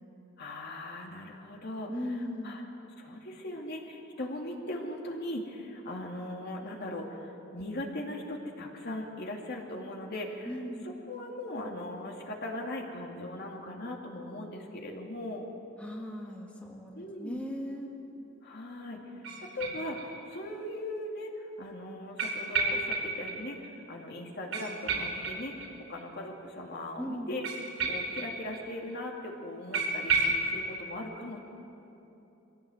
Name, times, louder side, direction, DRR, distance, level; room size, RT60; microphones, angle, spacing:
voice 1, 0.4-1.9 2.4-2.6 3.0-10.5 11.1-15.5 17.0-17.4 18.4-19.0 19.4-25.5 25.9-27.4 27.8-30.2 30.4-31.4, left 1 dB, 55° left, 0 dB, 2.6 m, -39 dB
voice 2, 1.9-2.6 10.5-10.9 15.8-17.9 27.0-27.3, equal, 5° left, -1 dB, 1.9 m, -38 dB
sound 1, 19.2-20.4 20.7-20.8 22.2-23.4 23.6-23.7 24.0-24.1 24.5-26.0 27.4-28.6 28.9-29.0 29.3-29.4 29.7-30.4, right 3 dB, 80° right, 4.5 m, -32 dB
23.5 x 17.0 x 8.0 m, 3.0 s
head